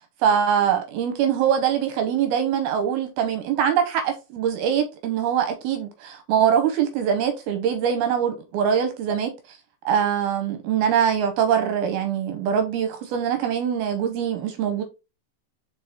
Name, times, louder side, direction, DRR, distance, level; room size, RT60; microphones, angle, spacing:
voice 1, 0.2-9.3 9.9-14.8, right 8 dB, 75° right, 2.4 m, -23 dB
6.0 x 4.7 x 3.5 m
omnidirectional pair, 5.1 m